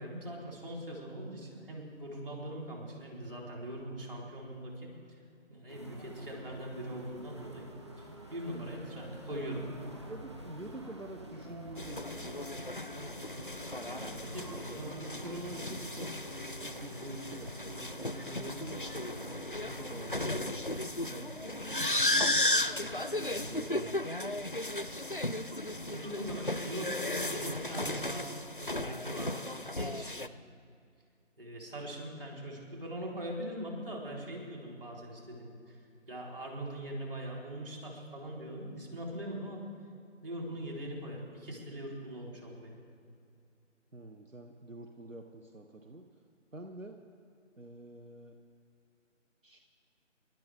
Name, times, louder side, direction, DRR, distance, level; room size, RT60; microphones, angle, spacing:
voice 1, 0.0-4.9 5.5-7.7 8.0-9.6 13.8-15.1 25.9-28.3 28.6-29.5 29.7-30.1 31.4-35.8 36.1-39.6 40.2-42.8, right 1 dB, 45° right, -2 dB, 4.3 m, -41 dB
sound 1, 5.7-20.4, right 1 dB, 20° right, 1.3 m, -48 dB
voice 2, 9.7-12.4 13.8-16.1 16.6-18.8 19.6-23.0 23.4-24.4 43.9-46.2 46.5-47.0 47.6-48.4 49.4-49.6, right 2 dB, 80° right, 4 dB, 1.4 m, -48 dB
sound 2, 11.8-30.3, left 1 dB, 45° left, 0.5 m, -35 dB
sound 3, 18.3-24.6, right 1 dB, 60° right, 1.4 m, -55 dB
28.5 x 12.5 x 3.7 m, 2.5 s
figure-of-eight pair, 160°, 38 cm